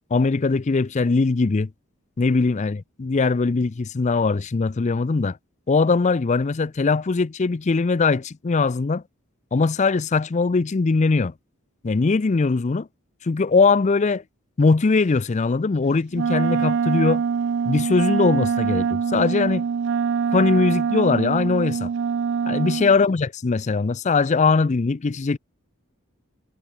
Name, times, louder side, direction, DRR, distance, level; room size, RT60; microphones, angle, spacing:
voice 1, 0.1-1.7 2.2-5.4 5.7-9.0 9.5-11.3 11.8-12.9 13.2-14.2 14.6-17.2 17.7-19.6 20.3-21.9 22.5-25.4, left 4 dB, 30° left, 0.4 m, -21 dB
Wind instrument woodwind instrument, 16.1-22.9, right 6 dB, 55° right, 0.3 m, -24 dB
head